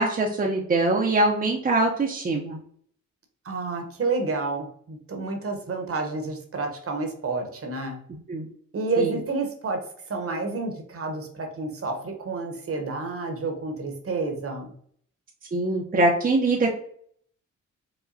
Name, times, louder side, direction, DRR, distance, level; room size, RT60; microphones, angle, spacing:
voice 1, 0.0-2.6 8.3-8.5 9.0-9.1 15.5-16.7, right 2 dB, 30° right, 0 dB, 0.6 m, -23 dB
voice 2, 3.4-8.0 8.7-14.7, right 3 dB, 45° right, 4 dB, 0.9 m, -29 dB
4.8 x 2.2 x 2.6 m, 0.62 s
cardioid pair, 65°, 32 cm